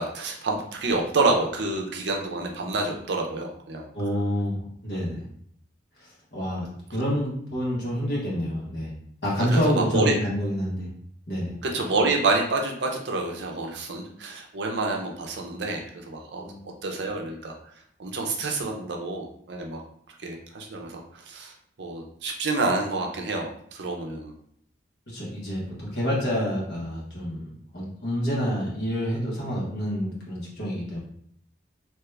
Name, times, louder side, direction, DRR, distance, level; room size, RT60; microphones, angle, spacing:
voice 1, 0.0-3.9 9.5-10.2 11.6-17.5 18.0-19.8 20.2-21.5 21.8-24.3, right 3 dB, 65° right, 1 dB, 0.5 m, -28 dB
voice 2, 3.9-5.2 6.0-8.9 9.2-10.9 11.3-11.5 16.4-16.6 25.1-31.0, equal, 60° left, -5 dB, 1.2 m, -28 dB
2.9 x 2.3 x 3.2 m, 0.65 s
head